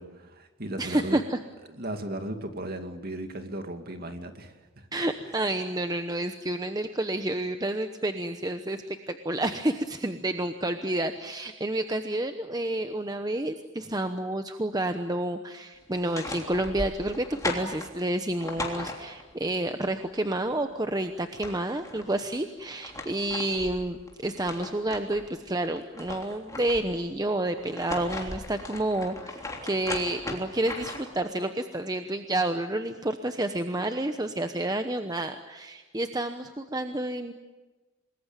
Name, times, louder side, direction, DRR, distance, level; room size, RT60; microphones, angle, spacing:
voice 1, 0.0-1.2 1.7-4.9, right 1 dB, 45° right, 6 dB, 2.5 m, -36 dB
voice 2, 0.8-1.4 4.9-8.8 9.1-37.3, right 1 dB, 15° right, 7 dB, 0.9 m, -29 dB
sound 1, 15.9-19.4 20.9-21.0 21.2-22.1 22.6-25.2 25.6-27.0 27.6-31.2, left 2 dB, 15° left, 3.3 m, -38 dB
27.5 x 20.5 x 9.1 m, 1.2 s
head